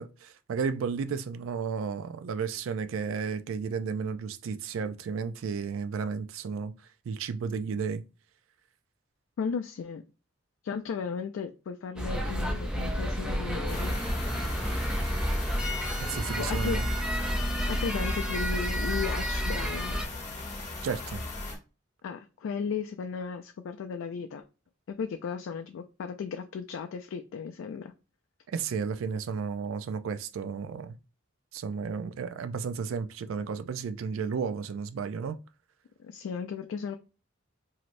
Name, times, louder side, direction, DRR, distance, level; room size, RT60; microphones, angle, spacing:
voice 1, 0.0-6.7 7.1-8.0 16.0-16.9 20.8-21.2 28.5-31.0 31.5-35.4, right 5 dB, 90° right, 0.4 m, -33 dB
voice 2, 9.4-10.0 10.6-14.0 16.4-16.8 17.7-20.0 22.0-24.4 24.9-27.9 34.2-34.3 36.0-37.0, left 6 dB, 85° left, 0.3 m, -35 dB
sound 1, 12.0-20.1, equal, 5° right, 0.5 m, -30 dB
sound 2, 13.7-21.6, left 2 dB, 35° left, 1.1 m, -38 dB
3.1 x 2.7 x 2.5 m
head